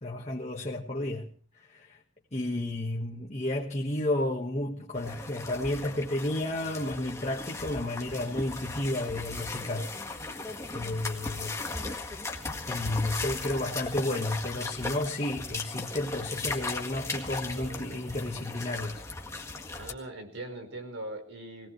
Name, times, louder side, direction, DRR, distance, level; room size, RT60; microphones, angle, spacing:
voice 1, 0.0-2.0 2.3-9.9 10.7-11.6 12.7-19.1, left 1 dB, 35° left, 1.5 m, -32 dB
sound 1, 4.9-19.9, left 3 dB, 15° left, 1.8 m, -37 dB
voice 2, 17.6-18.4 19.8-21.7, right 1 dB, 90° right, 4.8 m, -42 dB
22.5 x 18.0 x 3.2 m
head